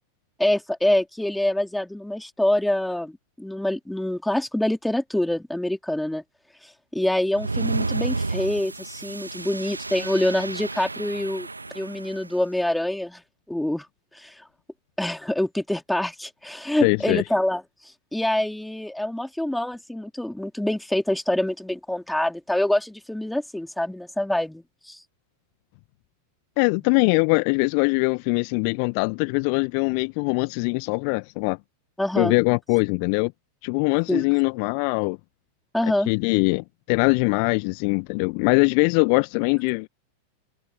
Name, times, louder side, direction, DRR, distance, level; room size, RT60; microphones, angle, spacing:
voice 1, 0.4-6.2 6.6-11.5 11.7-13.2 13.5-13.9 14.1-14.4 15.0-25.0 32.0-32.4 34.1-34.3 35.7-36.1, left 1 dB, 5° left, 4.2 m, -26 dB
sound 1, 7.3-12.3, right 3 dB, 80° right, 2.0 m, -31 dB
voice 2, 16.8-17.2 26.6-31.6 32.2-33.3 33.6-35.2 36.1-39.9, left 40 dB or more, 45° left, 1.9 m, -22 dB
figure-of-eight pair, 90°, 0 cm